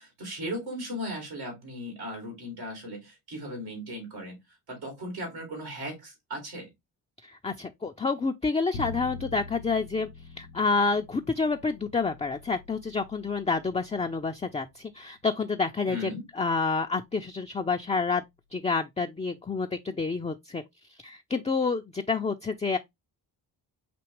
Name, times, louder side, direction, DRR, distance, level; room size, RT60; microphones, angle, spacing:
voice 1, 0.0-4.4 4.7-6.7 15.9-16.2, equal, 90° right, 2.8 m, -37 dB
voice 2, 7.3-10.1 10.4-16.1 16.4-18.2 18.5-20.6 21.0-22.8, left 4 dB, 15° left, 0.4 m, -28 dB
Bowed string instrument, 8.7-14.9, left 3 dB, 90° left, 0.6 m, -44 dB
6.1 x 2.8 x 3.0 m
supercardioid pair, 40°, 49 cm